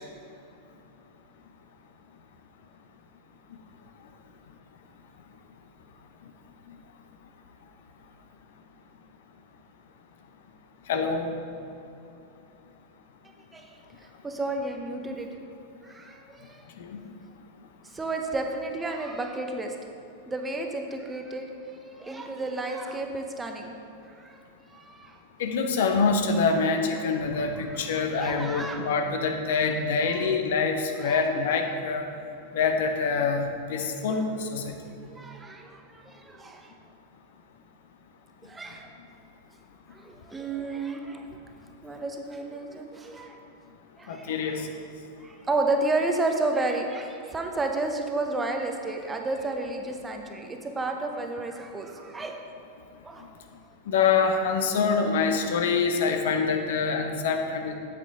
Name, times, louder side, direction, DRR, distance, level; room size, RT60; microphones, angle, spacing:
voice 1, 10.9-11.3 16.8-17.0 25.4-32.1 32.5-34.8 44.1-44.7 53.9-57.7, left 5 dB, 55° left, 5 dB, 0.7 m, -25 dB
voice 2, 14.2-15.3 15.8-16.6 17.9-19.7 20.3-21.5 22.0-23.7 24.2-24.4 24.7-25.2 27.6-27.9 28.1-28.9 30.1-30.2 31.0-31.2 34.6-34.7 35.1-36.7 38.4-38.9 39.9-41.2 41.8-43.4 44.0-44.7 45.2-52.4 53.0-53.2, right 2 dB, 15° right, 4 dB, 0.8 m, -32 dB
8.4 x 8.3 x 3.7 m, 2.7 s
figure-of-eight pair, 90°, 0 cm